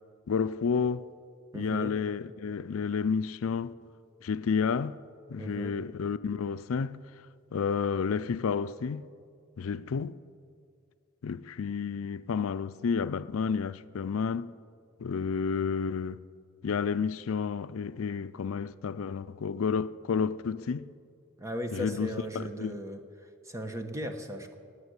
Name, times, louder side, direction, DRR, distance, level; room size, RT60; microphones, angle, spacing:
voice 1, 0.3-1.1 1.5-3.7 4.2-4.9 5.3-7.0 7.5-9.0 9.6-10.2 11.2-14.5 15.0-16.2 16.6-20.9 21.7-22.8, left 6 dB, 85° left, 0.4 m, -30 dB
voice 2, 1.5-1.9 5.4-5.7 21.4-24.5, equal, 15° right, 1.1 m, -37 dB
16.5 x 9.7 x 8.1 m
head